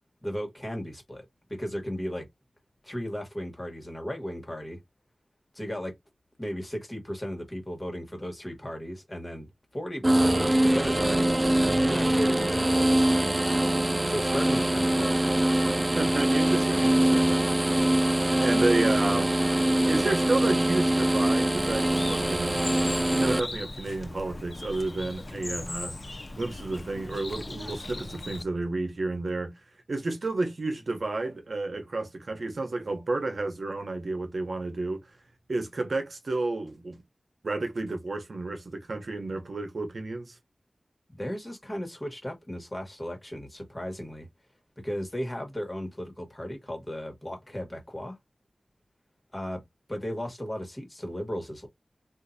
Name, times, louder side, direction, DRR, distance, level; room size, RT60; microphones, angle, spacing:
voice 1, 0.2-2.3 2.8-4.8 5.5-5.9 6.4-9.5 9.7-11.3 11.9-13.2 14.1-15.4 41.1-44.3 44.8-48.2 49.3-49.6 49.9-51.7, equal, 20° left, 1.6 m, -35 dB
sound 1, 10.0-23.4, right 1 dB, 25° right, 0.3 m, -23 dB
voice 2, 15.9-17.4 18.4-19.4 19.9-22.7 23.1-26.0 26.4-29.5 29.9-35.0 35.5-37.0 37.4-40.3, right 2 dB, 70° right, 0.8 m, -31 dB
Bird, 21.5-28.4, left 2 dB, 45° left, 0.4 m, -38 dB
3.7 x 2.5 x 2.6 m
wide cardioid pair, 85°, 0 cm